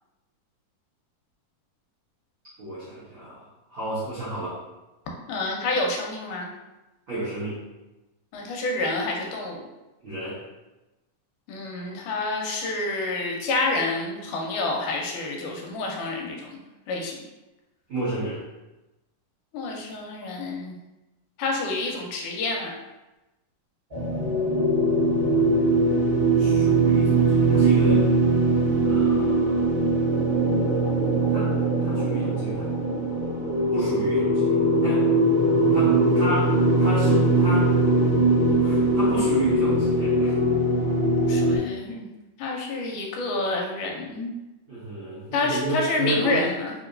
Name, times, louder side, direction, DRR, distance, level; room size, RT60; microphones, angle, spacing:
voice 1, 2.6-4.6 7.1-7.6 10.0-10.4 17.9-18.4 26.4-28.1 28.8-29.7 31.3-31.5 31.8-32.7 33.7-34.5 34.8-35.1 35.7-37.7 38.6-40.3 44.7-46.5, right 1 dB, 80° right, -9 dB, 1.1 m, -31 dB
voice 2, 5.3-6.5 8.3-9.6 11.5-16.5 16.9-17.2 19.5-20.8 21.4-22.7 41.3-42.1 42.4-44.4 45.3-46.7, left 2 dB, 80° left, 0 dB, 2.1 m, -28 dB
sound 1, 23.9-41.6, right 2 dB, 60° right, 0.5 m, -21 dB
4.8 x 2.9 x 2.5 m, 1.0 s
omnidirectional pair, 3.7 m